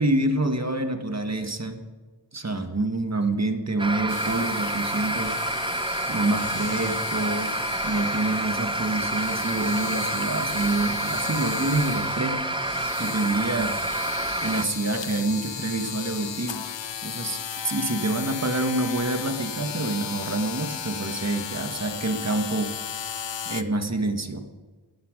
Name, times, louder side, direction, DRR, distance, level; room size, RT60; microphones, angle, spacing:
voice 1, 0.0-1.8 2.3-5.4 6.1-7.5 7.8-12.4 13.0-13.8 14.4-16.6 17.0-22.7 23.4-24.4, right 2 dB, 40° right, 6 dB, 1.6 m, -27 dB
sound 1, 3.8-14.7, right 2 dB, 10° right, 0.5 m, -29 dB
sound 2, 4.1-23.6, left 8 dB, 90° left, 0.8 m, -35 dB
18.5 x 13.0 x 5.2 m, 1.3 s
wide cardioid pair, 75°, 43 cm